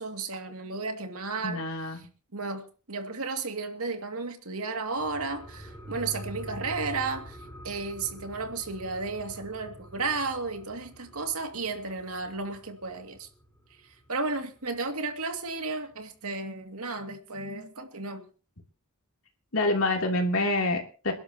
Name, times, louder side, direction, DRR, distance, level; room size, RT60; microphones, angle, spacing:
voice 1, 0.0-1.6 2.3-13.3 13.8-18.3, right 3 dB, 85° right, 2.4 m, -33 dB
voice 2, 1.4-2.0 19.5-21.1, left 2 dB, 70° left, 3.2 m, -26 dB
sound 1, 4.9-14.0 14.4-14.5, equal, 15° left, 4.9 m, -45 dB
27.5 x 11.5 x 3.0 m
head